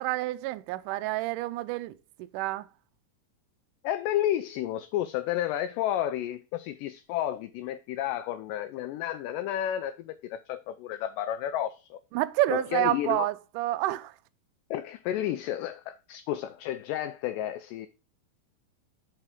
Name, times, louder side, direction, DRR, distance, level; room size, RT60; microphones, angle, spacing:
voice 1, 0.0-2.0 2.3-2.7 12.1-14.1, right 17 dB, 90° right, 1.8 m, -28 dB
voice 2, 3.8-12.0 12.5-13.3 14.7-17.9, left 12 dB, 85° left, 1.9 m, -31 dB
6.8 x 5.7 x 3.6 m
omnidirectional pair, 4.3 m